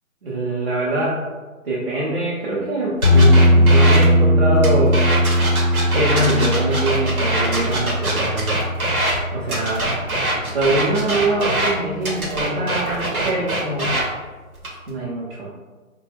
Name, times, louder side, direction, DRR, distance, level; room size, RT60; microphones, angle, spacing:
voice 1, 0.2-1.2 1.6-5.0 5.9-8.6 9.3-9.9 10.5-14.0 14.9-15.5, right 1 dB, 40° right, -6 dB, 0.5 m, -23 dB
sound 1, 3.0-11.1, left 1 dB, 35° left, 0.4 m, -18 dB
sound 2, 3.0-4.1 4.6-9.2 9.5-11.7 12.0-14.0 14.6-14.9, right 2 dB, 80° right, 0.9 m, -23 dB
2.1 x 2.0 x 3.2 m, 1.3 s
figure-of-eight pair, 145°, 43 cm